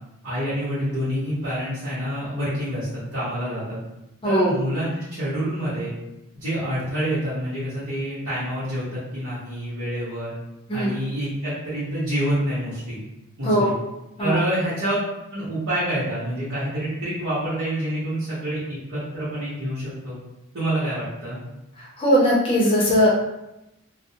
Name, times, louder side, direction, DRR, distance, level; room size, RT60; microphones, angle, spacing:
voice 1, 0.2-3.8 4.2-5.9 6.3-10.3 10.7-13.0 13.4-13.7 14.2-14.9 15.3-20.2 20.5-21.4, right 1 dB, 80° right, -13 dB, 0.9 m, -27 dB
voice 2, 4.2-4.5 10.7-11.0 13.4-13.7 14.2-14.4 22.0-23.1, equal, 25° left, -5 dB, 0.5 m, -19 dB
2.3 x 2.0 x 2.7 m, 0.92 s
head